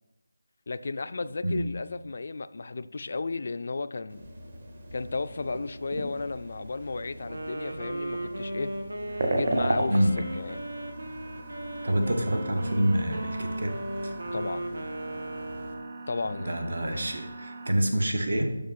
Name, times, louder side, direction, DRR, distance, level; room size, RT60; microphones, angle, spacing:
voice 1, 0.7-4.3 4.9-8.7 9.3-10.1 10.3-10.6 14.3-14.6 16.1-16.5, left 3 dB, 45° left, 12 dB, 0.3 m, -34 dB
sound 1, 4.1-15.7, right 1 dB, 40° right, 1.2 m, -36 dB
Wind instrument woodwind instrument, 7.1-16.1, right 1 dB, 85° right, 1.7 m, -36 dB
sound 2, 9.1-17.7, right 3 dB, 25° right, 0.5 m, -46 dB
voice 2, 11.8-13.8 14.0-14.1 16.3-18.5, right 1 dB, 70° right, 5 dB, 1.6 m, -27 dB
7.4 x 6.2 x 6.2 m, 1.0 s
figure-of-eight pair, 170°, 0 cm